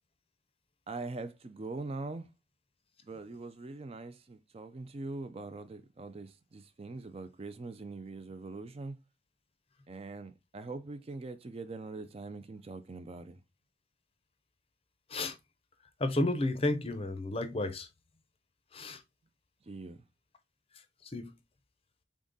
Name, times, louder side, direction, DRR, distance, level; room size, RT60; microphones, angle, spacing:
voice 1, 0.9-2.3 3.1-9.0 9.9-13.4 19.6-20.0, right 3 dB, 30° right, 0.4 m, -42 dB
voice 2, 16.0-17.9 18.7-19.0 21.0-21.3, left 2 dB, 30° left, 0.6 m, -32 dB
3.7 x 3.6 x 3.8 m
head